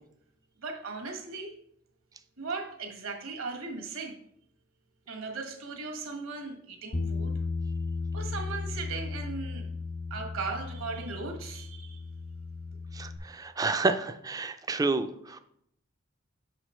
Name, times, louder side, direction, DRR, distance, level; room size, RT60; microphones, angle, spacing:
voice 1, 0.6-1.6 2.4-4.2 5.1-7.3 8.1-9.7 10.1-12.0, right 4 dB, 75° right, 3 dB, 1.3 m, -37 dB
Bass guitar, 6.9-13.2, left 4 dB, 75° left, 0.7 m, -35 dB
voice 2, 12.9-15.4, right 3 dB, 15° right, 9 dB, 0.3 m, -29 dB
6.1 x 5.0 x 4.3 m, 0.71 s
head